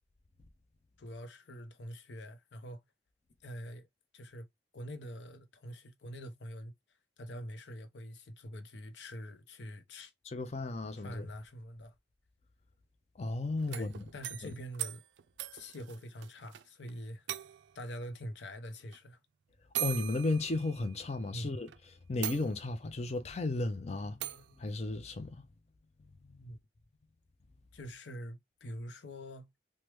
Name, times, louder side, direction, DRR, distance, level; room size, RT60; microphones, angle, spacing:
voice 1, 1.0-2.8 3.4-3.9 4.1-4.5 4.7-6.7 7.2-10.1 11.0-11.9 13.7-15.0 15.5-17.3 17.7-19.2 21.3-21.5 26.4-26.6 27.7-29.5, equal, 80° left, 0.6 m, -45 dB
voice 2, 10.3-11.3 13.2-14.0 19.8-21.7 22.1-25.5 26.2-26.4, left 2 dB, 40° left, 0.5 m, -34 dB
sound 1, 13.6-16.6 16.9-17.0 17.3-17.9 18.9-19.0 19.7-21.2 21.7-21.8 22.2-22.9 24.2-24.5, right 14 dB, 90° right, 0.3 m, -40 dB
3.2 x 2.1 x 3.0 m
head